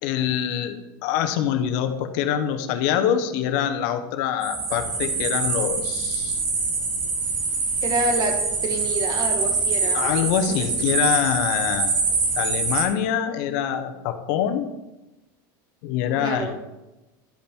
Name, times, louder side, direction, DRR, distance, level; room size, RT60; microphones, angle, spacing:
voice 1, 0.0-6.4 9.9-11.9 12.3-14.7 15.8-16.6, left 9 dB, 65° left, 8 dB, 1.0 m, -25 dB
sound 1, 4.4-12.8, right 4 dB, 80° right, 2.6 m, -25 dB
voice 2, 7.8-10.7 16.2-16.6, right 2 dB, 35° right, 4 dB, 1.7 m, -28 dB
12.0 x 5.4 x 4.5 m, 1.0 s
supercardioid pair, 125°, 11 cm